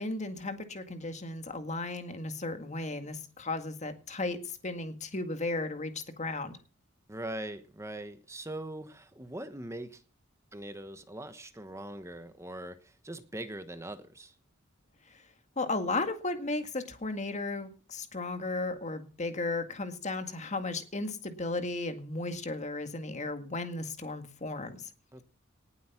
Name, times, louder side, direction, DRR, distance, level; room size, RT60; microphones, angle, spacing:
voice 1, 0.0-4.4 4.6-6.6 15.6-24.9, left 2 dB, 35° left, 8 dB, 1.9 m, -35 dB
voice 2, 7.1-10.0 10.5-14.3 25.1-25.2, right 1 dB, 15° right, 10 dB, 1.2 m, -41 dB
19.0 x 8.1 x 5.9 m, 0.39 s
head